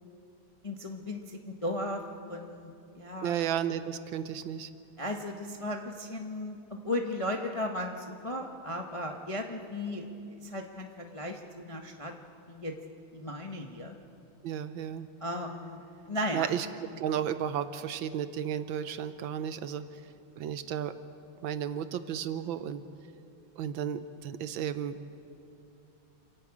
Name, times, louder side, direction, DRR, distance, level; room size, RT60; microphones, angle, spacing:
voice 1, 0.6-2.0 2.3-3.3 5.0-12.1 12.5-12.7 13.1-14.0 15.2-16.5, left 1 dB, 30° left, 2 dB, 0.5 m, -36 dB
voice 2, 3.2-4.7 14.4-15.1 16.3-16.7 17.0-20.0 20.4-21.0 21.4-22.8 23.6-25.0, right 9 dB, 75° right, 11 dB, 1.4 m, -33 dB
27.5 x 11.0 x 8.6 m, 2.5 s
omnidirectional pair, 2.3 m